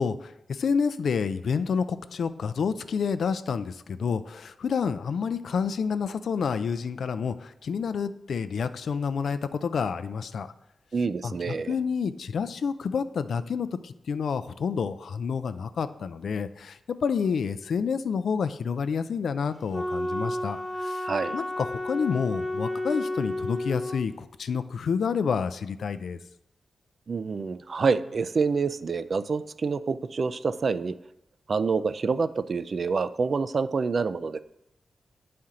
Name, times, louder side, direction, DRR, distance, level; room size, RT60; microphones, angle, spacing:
voice 1, 0.0-10.5 11.2-21.1 21.3-26.2, left 6 dB, 80° left, 12 dB, 0.4 m, -29 dB
voice 2, 10.9-11.8 21.0-21.4 27.1-31.0 31.5-34.4, right 4 dB, 55° right, 13 dB, 0.4 m, -27 dB
Wind instrument woodwind instrument, 19.7-24.0, left 1 dB, 5° right, 1.0 m, -31 dB
9.3 x 4.3 x 3.7 m, 0.82 s
cardioid pair, 70°, 0 cm